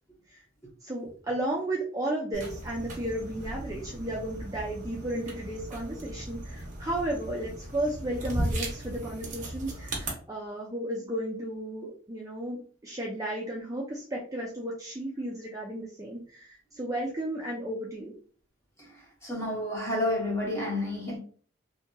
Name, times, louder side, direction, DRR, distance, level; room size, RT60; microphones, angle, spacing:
voice 1, 0.8-18.1, right 1 dB, 15° right, 0.4 m, -34 dB
sound 1, 2.3-10.1, right 1 dB, 40° right, 0.7 m, -37 dB
voice 2, 19.2-21.2, left 1 dB, 15° left, 0.8 m, -30 dB
2.8 x 2.6 x 2.2 m
head